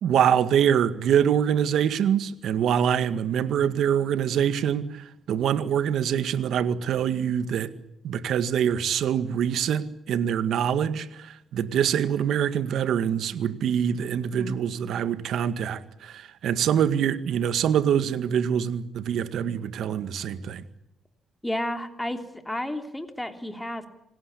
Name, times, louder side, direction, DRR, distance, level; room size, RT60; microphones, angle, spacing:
voice 1, 0.0-7.7 8.0-20.6, right 9 dB, 75° right, 11 dB, 1.9 m, -25 dB
voice 2, 21.4-23.9, left 1 dB, 10° left, 6 dB, 3.1 m, -32 dB
26.5 x 18.5 x 8.6 m, 0.84 s
cardioid pair, 90°, 0 cm